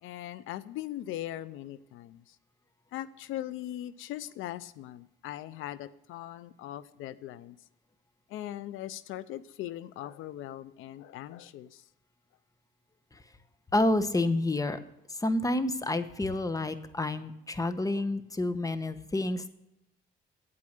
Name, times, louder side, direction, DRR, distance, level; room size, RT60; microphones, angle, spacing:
voice 1, 0.0-2.4 2.9-7.6 8.3-11.8, left 13 dB, 90° left, 17 dB, 0.5 m, -40 dB
voice 2, 13.7-14.8 15.2-19.4, left 2 dB, 15° left, 12 dB, 1.0 m, -29 dB
9.7 x 8.6 x 6.6 m, 0.87 s
cardioid pair, 90°, 20 cm